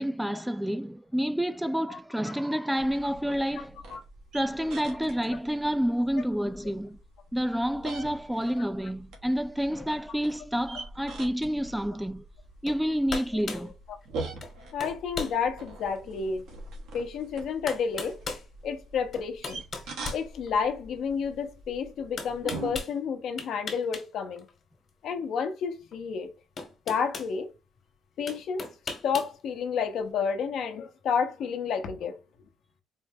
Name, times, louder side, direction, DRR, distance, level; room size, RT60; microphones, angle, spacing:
voice 1, 0.0-3.8 4.3-7.0 7.3-12.2 12.6-13.7, equal, 5° right, 0.4 m, -29 dB
sound 1, 2.8-22.8, right 3 dB, 85° right, 1.1 m, -44 dB
sound 2, 12.7-12.8 13.1-13.7 14.4-14.5 14.8-15.4 16.0-16.1 17.1-17.2 17.7-18.5 19.1-20.8 22.2-22.9 23.4-24.1 24.4-24.5 25.9-26.0 26.6-27.3 28.3-29.3, left 4 dB, 50° left, 1.3 m, -37 dB
voice 2, 14.7-16.4 16.9-18.2 18.6-19.6 20.1-24.4 25.0-26.3 26.9-27.5 28.2-28.7 29.0-32.2, left 6 dB, 75° left, 0.8 m, -30 dB
4.6 x 2.1 x 3.5 m
cardioid pair, 90°, 0 cm